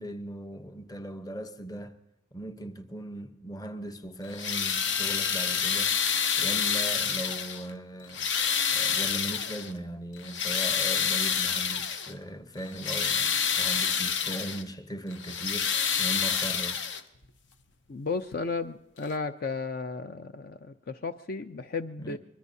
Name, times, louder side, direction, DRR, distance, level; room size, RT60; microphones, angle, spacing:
voice 1, 0.0-2.0 2.3-6.0 6.4-8.3 8.7-15.7 16.0-16.8 22.0-22.2, right 1 dB, 20° left, 0.8 m, -39 dB
sound 1, 4.2-7.7 8.1-9.7 10.2-12.1 12.6-14.6 15.1-17.2 18.3-18.4 19.0-19.1, left 7 dB, 70° left, 0.9 m, -28 dB
voice 2, 17.9-22.2, left 4 dB, 50° left, 0.5 m, -34 dB
24.5 x 21.5 x 2.7 m
head